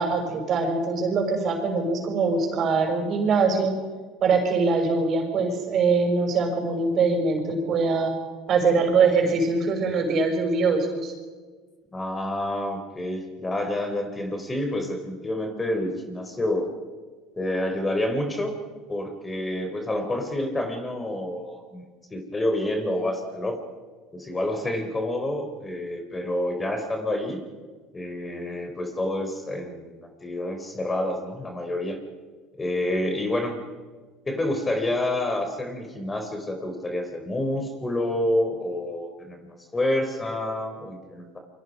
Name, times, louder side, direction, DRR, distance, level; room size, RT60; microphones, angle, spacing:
voice 1, 0.0-3.7 4.2-8.2 8.5-11.1, right 4 dB, 50° right, 3 dB, 6.4 m, -23 dB
voice 2, 11.9-16.7 17.4-18.5 18.9-21.9 22.1-23.6 24.1-27.4 27.9-32.0 32.6-33.5 34.3-41.4, left 1 dB, 20° left, 5 dB, 3.9 m, -28 dB
28.0 x 23.5 x 5.4 m, 1.4 s
supercardioid pair, 95°, 0 cm